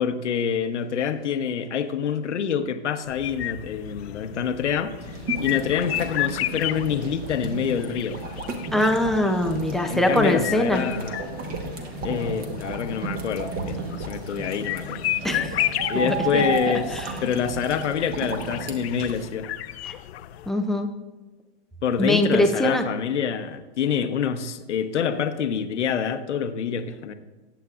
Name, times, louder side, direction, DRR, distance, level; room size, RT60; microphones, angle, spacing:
voice 1, 0.0-8.2 9.8-11.2 12.0-15.0 15.9-19.5 21.8-27.1, left 7 dB, 90° left, 8 dB, 1.0 m, -26 dB
sound 1, 3.1-20.5, left 14 dB, 65° left, 0.6 m, -33 dB
sound 2, 5.0-19.3, right 3 dB, 25° right, 1.2 m, -33 dB
voice 2, 8.7-10.8 15.2-15.5 15.9-16.4 16.9-17.1 19.9-20.0 20.5-20.9 22.0-22.8, left 1 dB, ahead, 3 dB, 0.4 m, -22 dB
19.0 x 8.1 x 2.4 m, 1.2 s
hypercardioid pair, 135°, 34 cm